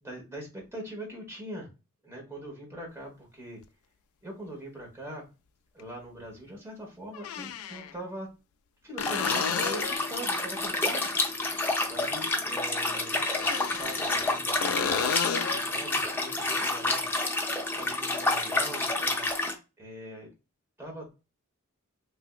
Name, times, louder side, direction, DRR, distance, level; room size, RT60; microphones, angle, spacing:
voice 1, 0.0-1.7 2.0-3.6 4.2-5.2 5.7-8.3 8.8-11.1 11.8-17.1 17.8-19.3 19.8-20.3 20.8-21.1, right 1 dB, 15° right, -1 dB, 1.1 m, -42 dB
sound 1, 3.6-3.7 5.8-5.9 7.1-7.9 9.0-10.1 13.3-14.3 14.6-15.7 19.3-19.4, left 7 dB, 85° left, 0.3 m, -32 dB
Liquid, 9.0-19.5, left 2 dB, 10° left, 0.4 m, -29 dB
3.3 x 2.7 x 2.3 m, 0.29 s
head